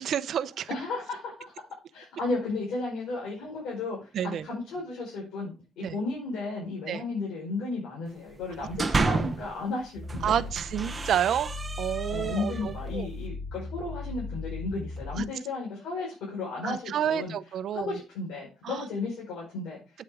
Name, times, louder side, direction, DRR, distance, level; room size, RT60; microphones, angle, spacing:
voice 1, 0.0-0.7 4.1-4.5 5.8-6.0 6.9-7.0 10.2-11.5 11.8-13.1 15.2-15.3 16.6-17.9 18.6-18.8, right 9 dB, 60° right, 0.7 m, -29 dB
voice 2, 0.7-1.5 1.9-10.3 12.1-17.3 17.7-19.8, left 3 dB, 85° left, 5.1 m, -34 dB
sound 1, 8.4-9.5 10.0-12.8, right 3 dB, 20° right, 0.9 m, -31 dB
sound 2, 9.9-15.2, left 3 dB, 15° left, 5.0 m, -38 dB
8.4 x 8.0 x 4.9 m
cardioid pair, 150°, 0 cm